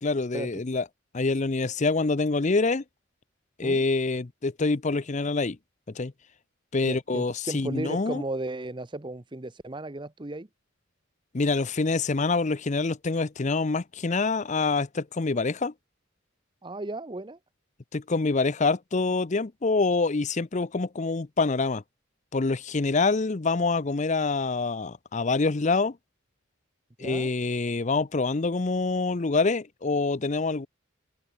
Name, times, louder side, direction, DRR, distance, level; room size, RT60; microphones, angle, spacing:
voice 1, 0.0-0.9 1.1-2.8 3.6-5.6 5.9-6.1 6.7-8.2 11.3-15.7 17.9-21.8 22.3-26.0 27.0-30.7, left 3 dB, 35° left, 0.6 m, -26 dB
voice 2, 6.8-10.5 16.6-17.4 27.0-27.3, right 2 dB, 25° right, 0.9 m, -35 dB
head